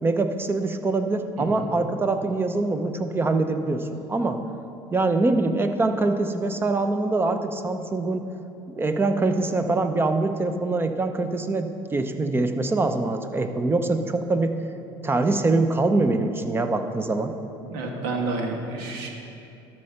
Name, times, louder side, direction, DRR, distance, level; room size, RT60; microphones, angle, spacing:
voice 1, 0.0-4.4 4.9-8.3 8.7-14.6 15.0-17.3, right 3 dB, 20° right, 8 dB, 0.7 m, -24 dB
voice 2, 17.6-19.1, right 3 dB, 85° right, 2 dB, 1.4 m, -30 dB
13.0 x 4.4 x 5.7 m, 2.8 s
supercardioid pair, 95°, 11 cm